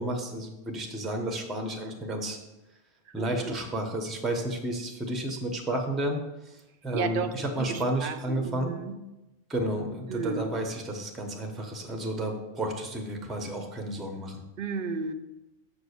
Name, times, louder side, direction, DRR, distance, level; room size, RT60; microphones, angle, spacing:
voice 1, 0.0-2.4 3.1-6.6 6.8-8.7 9.5-14.4, right 1 dB, ahead, 3 dB, 0.8 m, -32 dB
voice 2, 3.2-3.6 6.9-9.0 10.1-10.5 14.6-15.1, right 5 dB, 55° right, 9 dB, 0.7 m, -33 dB
7.0 x 4.8 x 6.6 m, 1.0 s
omnidirectional pair, 1.3 m